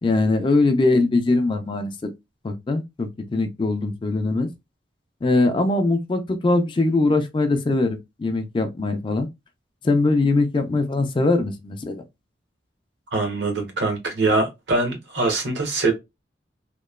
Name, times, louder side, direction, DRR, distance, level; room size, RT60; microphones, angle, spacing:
voice 1, 0.0-2.1 2.4-4.5 5.2-9.3 9.8-12.0, left 2 dB, 25° left, 0.3 m, -21 dB
voice 2, 13.1-15.9, right 3 dB, 75° right, 0.9 m, -23 dB
2.9 x 2.2 x 2.2 m
head